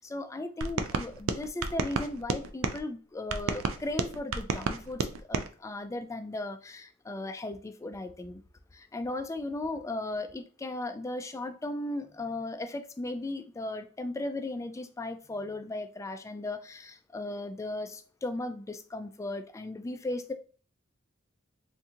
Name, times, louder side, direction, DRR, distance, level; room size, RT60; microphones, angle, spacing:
voice 1, 0.0-8.4 8.7-20.3, left 2 dB, 15° left, 0.3 m, -36 dB
sound 1, 0.6-2.8 3.3-5.5, right 4 dB, 80° right, 0.4 m, -31 dB
3.7 x 2.6 x 2.8 m
head